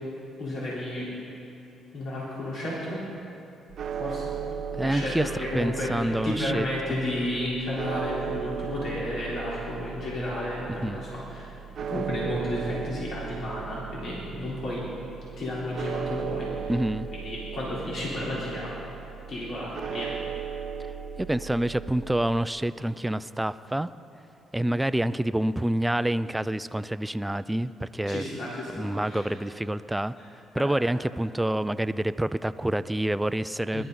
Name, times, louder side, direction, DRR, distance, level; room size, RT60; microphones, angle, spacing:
voice 1, 0.4-1.1 1.9-3.0 3.9-4.4 4.8-11.5 11.8-14.8 15.4-16.7 17.1-18.7 19.3-20.1 28.1-29.3 30.2-30.3 30.5-30.7 33.7-33.9, left 1 dB, 60° left, -7 dB, 3.6 m, -32 dB
sound 1, 3.7-22.5, right 7 dB, 60° right, 0.5 m, -37 dB
voice 2, 4.7-5.3 5.5-7.0 10.8-11.0 16.7-17.1 21.2-23.9 24.5-28.2 28.7-30.1 30.5-33.8, right 1 dB, 10° right, 14 dB, 0.3 m, -27 dB
21.0 x 12.5 x 3.9 m, 2.8 s
cardioid pair, 90°, 0 cm